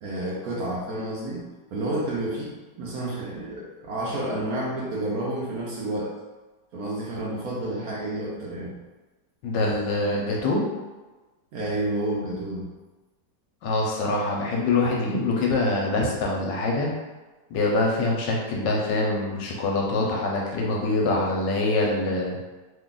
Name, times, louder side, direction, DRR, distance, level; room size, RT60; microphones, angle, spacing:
voice 1, 0.0-6.1 6.7-8.8 11.5-12.7, right 1 dB, 65° right, -5 dB, 1.0 m, -30 dB
voice 2, 9.4-10.6 13.6-16.9 17.5-22.4, left 2 dB, 80° left, -2 dB, 1.3 m, -24 dB
3.2 x 2.3 x 3.7 m, 1.2 s
omnidirectional pair, 2.0 m